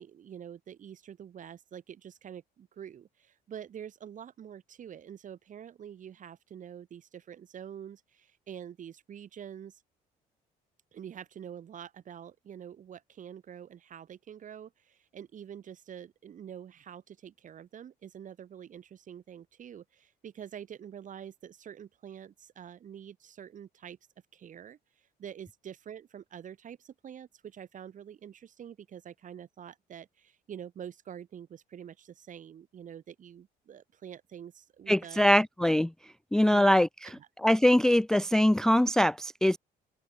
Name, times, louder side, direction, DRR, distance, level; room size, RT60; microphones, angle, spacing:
voice 1, 0.0-9.8 10.9-24.0 24.3-24.8 25.2-35.2 36.5-36.7 37.1-37.3, right 9 dB, 50° right, 5.1 m, -46 dB
voice 2, 34.9-35.9 36.3-36.9 37.4-39.6, left 1 dB, 5° left, 0.3 m, -22 dB
cardioid pair, 110°, 17 cm